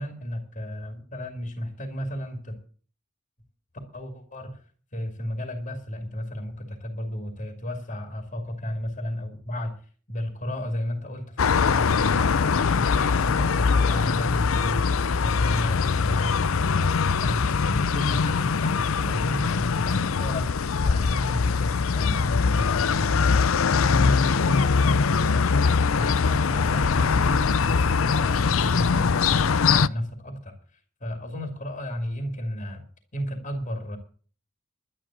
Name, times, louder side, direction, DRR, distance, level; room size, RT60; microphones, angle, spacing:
voice 1, 0.0-2.6 3.9-4.6 4.9-9.8 10.1-23.5 23.8-30.5 31.0-32.9 33.1-34.0, equal, 35° left, 6 dB, 2.6 m, -33 dB
sound 1, 11.4-29.9, left 5 dB, 75° left, 0.5 m, -22 dB
11.5 x 10.0 x 7.4 m, 0.42 s
head